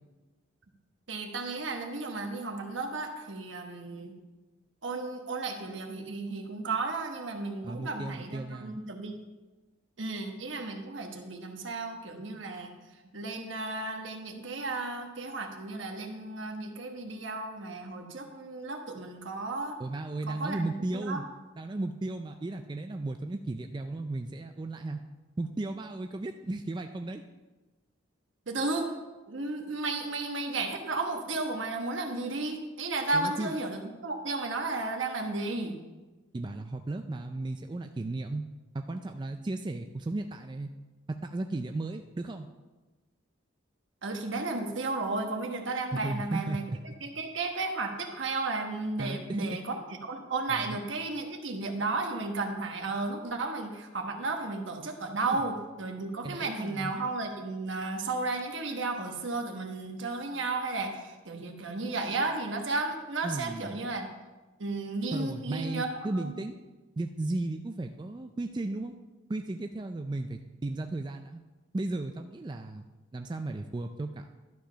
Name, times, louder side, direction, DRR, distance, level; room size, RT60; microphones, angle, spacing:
voice 1, 1.1-4.2 4.8-9.1 10.0-12.7 13.1-19.7 20.3-21.2 28.5-28.9 29.3-35.7 44.0-46.6 47.0-49.7 50.0-64.1 64.6-65.9 66.2-66.3, right 3 dB, 70° right, 4 dB, 1.2 m, -33 dB
voice 2, 7.6-8.8 19.8-21.2 21.6-25.0 25.4-27.2 33.1-33.5 36.3-38.5 38.7-40.7 41.1-42.5 45.9-46.6 49.0-49.8 50.5-50.8 55.3-55.4 56.2-56.9 63.2-63.8 65.1-66.6 67.0-69.0 69.3-71.4 71.7-74.3, right 2 dB, 25° right, 6 dB, 0.3 m, -35 dB
11.5 x 5.0 x 5.6 m, 1.2 s
head